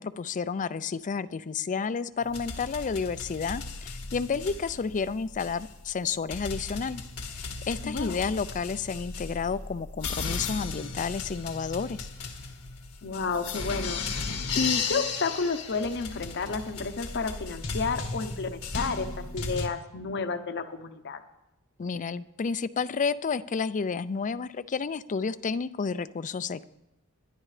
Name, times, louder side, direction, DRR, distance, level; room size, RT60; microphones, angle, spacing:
voice 1, 0.0-7.0 7.3-12.1 21.8-26.6, left 5 dB, 35° left, 15 dB, 0.4 m, -31 dB
sound 1, 2.2-19.7, left 4 dB, 85° left, 1.5 m, -36 dB
voice 2, 7.8-8.2 13.0-14.2 14.5-21.2, left 4 dB, 55° left, 9 dB, 0.8 m, -31 dB
22.0 x 10.5 x 3.3 m, 0.91 s
head